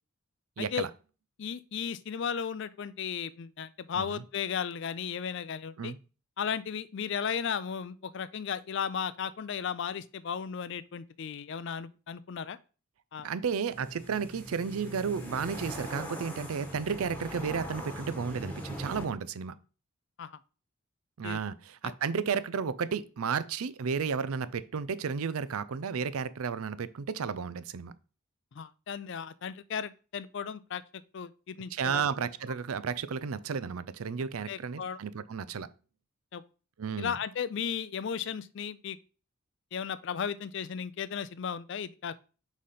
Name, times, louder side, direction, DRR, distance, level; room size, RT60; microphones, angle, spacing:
voice 1, 0.6-0.9 3.9-4.2 5.8-6.0 13.2-19.5 21.2-27.9 31.7-35.7 36.8-37.2, right 6 dB, 80° right, 0.5 m, -33 dB
voice 2, 1.4-5.9 6.4-12.6 13.1-13.3 20.2-20.4 21.2-21.4 21.8-21.9 28.5-30.8 31.1-32.0 34.5-35.0 36.3-36.4 37.0-39.0 39.7-42.2, left 7 dB, 55° left, 0.4 m, -35 dB
sound 1, 13.7-19.0, equal, 10° left, 1.1 m, -41 dB
4.9 x 4.2 x 5.6 m
head